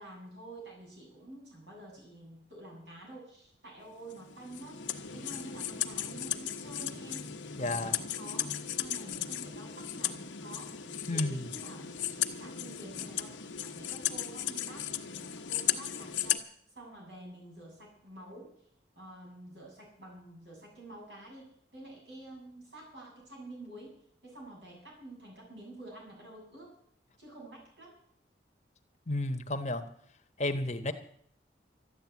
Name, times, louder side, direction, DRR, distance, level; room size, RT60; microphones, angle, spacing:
voice 1, 0.0-4.8 5.1-8.5 8.8-11.9 12.4-16.4 16.7-18.5 19.0-26.7 27.2-27.9, right 1 dB, 70° right, -2 dB, 7.9 m, -49 dB
sound 1, 4.1-16.4, left 10 dB, 90° left, 1.1 m, -36 dB
voice 2, 7.6-7.9 11.1-11.5 29.1-29.8 30.4-30.9, left 2 dB, 35° left, 7 dB, 1.2 m, -32 dB
13.0 x 10.5 x 8.4 m, 0.64 s
head